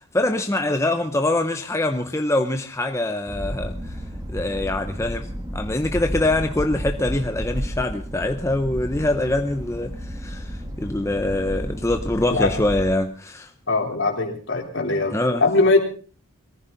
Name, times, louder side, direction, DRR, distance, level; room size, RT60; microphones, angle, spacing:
voice 1, 0.0-4.0 4.3-13.5 15.1-15.4, left 2 dB, 15° left, 0.8 m, -24 dB
sound 1, 3.3-13.0, equal, 15° right, 1.6 m, -32 dB
voice 2, 13.7-15.8, left 3 dB, 55° left, 3.7 m, -21 dB
22.5 x 14.5 x 4.0 m
head